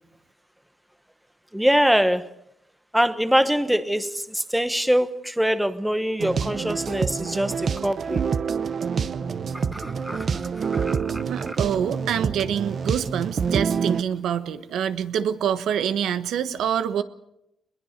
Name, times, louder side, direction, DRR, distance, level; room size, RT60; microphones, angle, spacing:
voice 1, 1.5-2.3 2.9-8.3 9.5-11.6, equal, 5° right, 1.0 m, -24 dB
sound 1, 6.2-14.0, right 6 dB, 45° right, 0.8 m, -27 dB
voice 2, 11.3-17.0, right 9 dB, 85° right, 1.3 m, -26 dB
22.5 x 21.0 x 6.6 m
cardioid pair, 135°, 0 cm